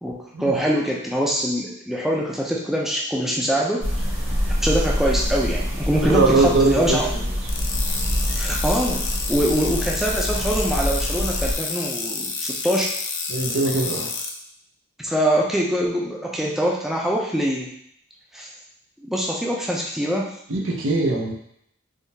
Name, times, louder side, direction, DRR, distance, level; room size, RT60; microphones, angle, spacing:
voice 1, 0.0-3.8 4.4-7.2 8.3-12.9 15.0-17.7 18.3-18.5 19.0-20.4, equal, ahead, -3 dB, 0.3 m, -24 dB
sound 1, 3.8-11.5, equal, 40° right, 1.1 m, -25 dB
voice 2, 6.1-7.0 13.3-14.1 20.5-21.3, right 3 dB, 80° right, 0 dB, 0.7 m, -20 dB
sound 2, 7.5-14.3, left 4 dB, 85° left, 0.5 m, -29 dB
3.5 x 2.3 x 2.7 m, 0.71 s
head